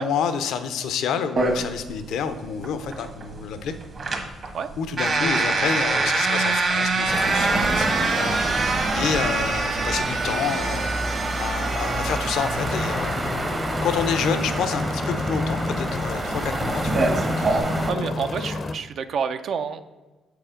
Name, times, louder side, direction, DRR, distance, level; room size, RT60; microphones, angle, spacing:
voice 1, 0.0-3.7 4.8-11.0 11.4-13.2 13.8-17.0 17.4-17.5 18.0-18.2, left 7 dB, 80° left, 10 dB, 0.6 m, -28 dB
sound 1, 1.4-17.6, right 3 dB, 50° right, 1.3 m, -26 dB
sound 2, 7.1-17.9, right 2 dB, 30° right, 0.8 m, -28 dB
sound 3, 12.6-18.8, left 3 dB, 40° left, 0.5 m, -29 dB
voice 2, 17.9-19.8, right 6 dB, 65° right, 9 dB, 0.4 m, -28 dB
7.0 x 4.8 x 5.0 m, 1.2 s
cardioid pair, 90°, 0 cm